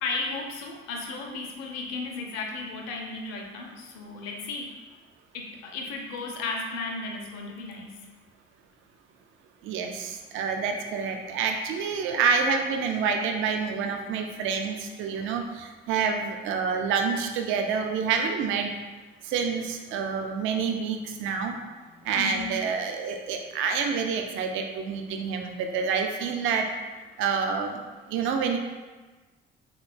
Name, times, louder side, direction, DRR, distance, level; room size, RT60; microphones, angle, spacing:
voice 1, 0.0-4.8 5.3-8.0 15.2-15.3 22.0-22.5, left 3 dB, 60° left, 2 dB, 0.5 m, -35 dB
voice 2, 9.6-18.7 19.3-21.6 22.1-26.7 27.2-27.8 28.1-28.6, right 5 dB, 45° right, 4 dB, 0.4 m, -28 dB
3.6 x 2.2 x 2.3 m, 1.3 s
figure-of-eight pair, 45°, 29 cm